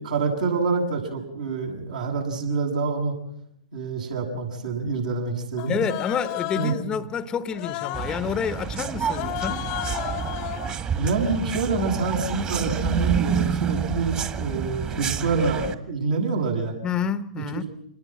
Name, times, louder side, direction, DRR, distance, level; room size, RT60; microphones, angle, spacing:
voice 1, 0.0-3.2 3.7-5.8 6.5-6.7 11.0-16.7 17.4-17.7, right 4 dB, 70° right, 7.9 m, -26 dB
Human voice, 5.6-6.9 7.5-8.2 9.0-10.8, left 17 dB, 40° left, 1.0 m, -32 dB
voice 2, 5.7-9.7 16.8-17.6, left 7 dB, 20° left, 0.9 m, -28 dB
sound 1, 7.9-15.7, right 7 dB, 25° right, 1.8 m, -28 dB
27.0 x 19.5 x 7.8 m
figure-of-eight pair, 115°, 4 cm